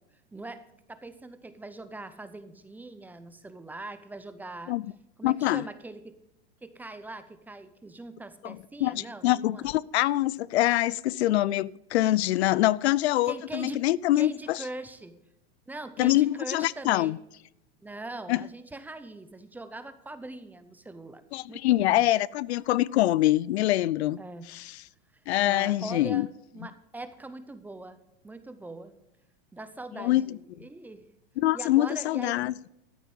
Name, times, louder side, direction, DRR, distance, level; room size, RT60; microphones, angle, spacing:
voice 1, 0.3-4.8 5.2-6.2 6.6-9.7 13.2-13.8 14.1-15.2 15.7-17.1 17.8-21.2 21.5-22.1 24.2-24.5 25.4-28.9 29.5-31.1 31.5-32.5, right 2 dB, 5° right, 0.6 m, -42 dB
voice 2, 5.2-5.6 8.4-14.6 16.0-17.2 18.3-18.4 21.3-24.2 24.5-24.7 25.3-26.3 30.0-30.2 31.4-32.5, left 15 dB, 80° left, 0.5 m, -25 dB
13.5 x 8.2 x 5.4 m
supercardioid pair, 145°, 32 cm